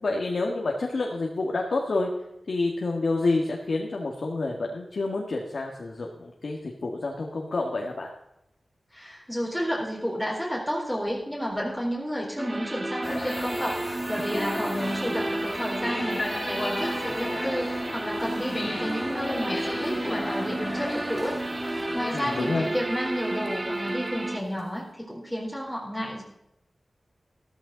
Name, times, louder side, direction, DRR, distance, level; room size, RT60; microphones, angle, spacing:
voice 1, 0.0-2.1 2.5-8.1 22.1-22.7, left 3 dB, 75° left, 0 dB, 1.8 m, -28 dB
voice 2, 8.9-26.2, equal, ahead, -5 dB, 4.0 m, -31 dB
sound 1, 12.4-24.4, right 2 dB, 40° right, 1.4 m, -32 dB
sound 2, 13.0-24.6, left 2 dB, 45° left, 2.0 m, -36 dB
14.5 x 14.0 x 4.0 m, 0.84 s
cardioid pair, 45°, 0 cm